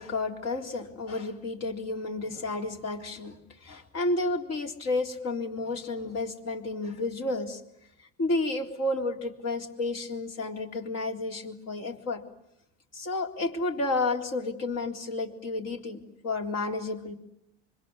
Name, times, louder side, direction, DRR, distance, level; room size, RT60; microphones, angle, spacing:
voice 1, 0.0-7.6 8.2-12.2 12.9-17.2, left 2 dB, 50° left, 3 dB, 3.8 m, -31 dB
25.5 x 23.0 x 9.8 m, 0.80 s
supercardioid pair, 80°, 32 cm